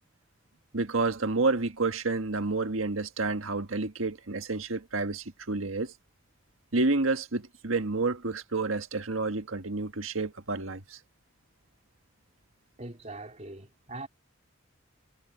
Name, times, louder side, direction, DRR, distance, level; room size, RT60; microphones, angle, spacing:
voice 1, 0.7-5.9 6.7-11.0, right 3 dB, 90° right, 1.6 m, -29 dB
voice 2, 12.8-14.1, right 2 dB, 35° right, 3.4 m, -41 dB
head